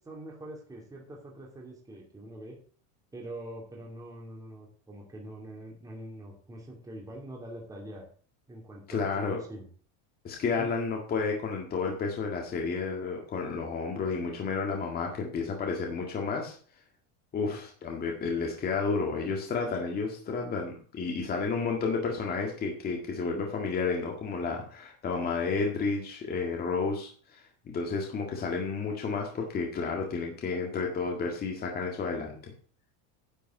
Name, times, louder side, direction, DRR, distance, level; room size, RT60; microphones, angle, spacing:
voice 1, 0.0-2.6 3.1-8.0 8.5-9.7 10.6-10.7 17.5-17.6, right 1 dB, 10° right, -2 dB, 2.5 m, -44 dB
voice 2, 8.9-9.4 10.2-16.5 17.3-32.5, left 4 dB, 20° left, 0 dB, 1.8 m, -31 dB
10.5 x 5.3 x 8.1 m, 0.43 s
supercardioid pair, 165°, 43 cm